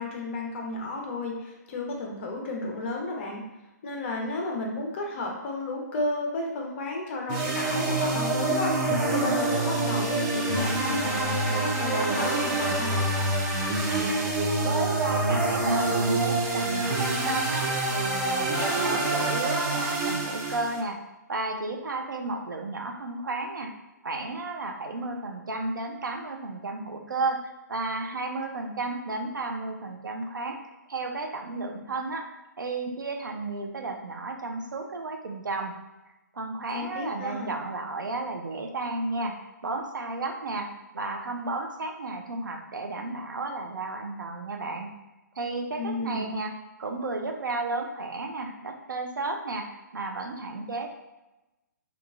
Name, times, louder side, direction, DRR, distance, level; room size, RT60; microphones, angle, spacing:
voice 1, 0.0-3.4 3.8-13.1 36.7-37.5 45.8-46.2, left 2 dB, 40° left, 0 dB, 0.6 m, -33 dB
sound 1, 7.3-20.8, right 2 dB, 20° right, 0.5 m, -26 dB
voice 2, 13.9-14.3 14.6-21.0 21.3-23.8 24.0-30.6 30.9-32.3 32.6-35.7 36.3-44.9 45.4-46.5 46.8-50.9, right 3 dB, 90° right, 3 dB, 0.5 m, -33 dB
3.0 x 2.3 x 2.3 m, 1.0 s
hypercardioid pair, 145°, 10 cm